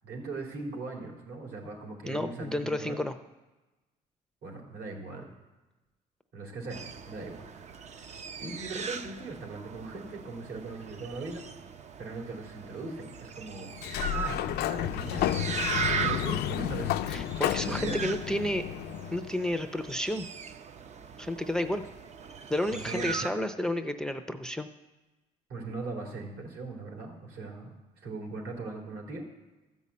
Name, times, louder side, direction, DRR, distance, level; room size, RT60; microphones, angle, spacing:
voice 1, 0.0-3.0 4.4-5.4 6.3-7.4 7.9-8.1 8.4-11.4 12.0-17.3 17.7-18.1 22.7-23.3 25.5-29.2, right 3 dB, 70° right, 1 dB, 3.2 m, -40 dB
voice 2, 2.1-3.1 17.1-18.6 19.1-20.3 21.2-21.8 22.5-24.7, left 1 dB, 5° left, 8 dB, 0.5 m, -31 dB
sound 1, 6.7-23.3, right 6 dB, 40° right, 0.6 m, -39 dB
Sliding door, 13.7-19.4, left 13 dB, 75° left, 0.5 m, -31 dB
13.5 x 5.5 x 8.4 m, 1.1 s
cardioid pair, 110°, 17 cm